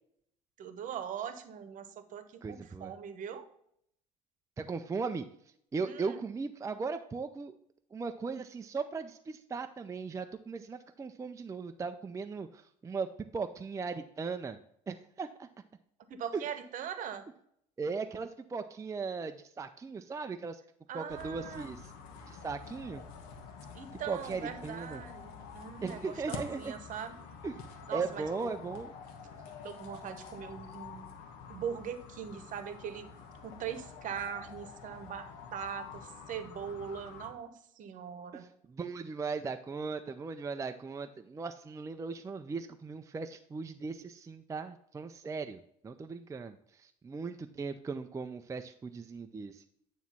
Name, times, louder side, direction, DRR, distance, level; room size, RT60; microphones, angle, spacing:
voice 1, 0.6-3.4 5.8-6.2 16.1-17.3 20.9-21.7 23.7-27.2 27.9-28.5 29.6-31.1 31.5-33.1 33.4-38.5, right 8 dB, 50° right, 10 dB, 1.0 m, -41 dB
voice 2, 2.4-2.9 4.6-5.3 5.7-7.5 7.9-14.6 14.9-15.5 16.3-16.4 17.8-20.6 20.9-21.9 22.3-23.0 24.1-25.0 25.8-26.7 27.4-28.9 38.3-49.6, right 4 dB, 20° right, 7 dB, 0.5 m, -38 dB
sound 1, 21.1-37.3, left 6 dB, 70° left, 1.1 m, -48 dB
9.2 x 3.1 x 5.6 m, 0.70 s
hypercardioid pair, 65°, 17 cm